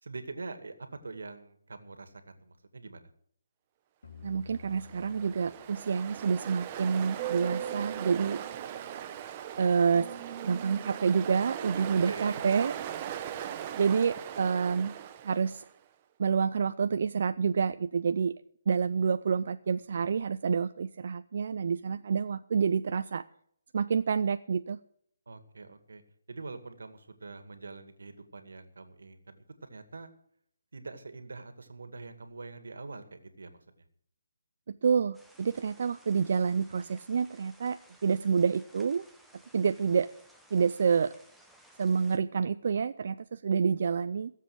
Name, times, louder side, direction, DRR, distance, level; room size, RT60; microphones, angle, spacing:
voice 1, 0.0-3.1 11.7-12.4 25.3-26.0 26.3-30.1 30.7-33.6, right 3 dB, 85° right, 9 dB, 2.1 m, -44 dB
sound 1, 4.0-7.3, left 6 dB, 80° left, 2.7 m, -52 dB
voice 2, 4.2-8.4 9.6-10.1 10.4-12.7 13.3-14.9 15.2-15.6 16.2-18.3 18.7-23.3 23.7-24.8 34.8-39.0 39.5-40.1 40.5-41.1 41.8-44.3, right 6 dB, 55° right, 11 dB, 0.5 m, -28 dB
Ocean, 4.6-15.7, right 10 dB, 25° right, 0.8 m, -39 dB
sound 2, 35.1-42.2, right 1 dB, ahead, 0.9 m, -59 dB
17.0 x 7.6 x 7.8 m, 0.65 s
hypercardioid pair, 165°, 0 cm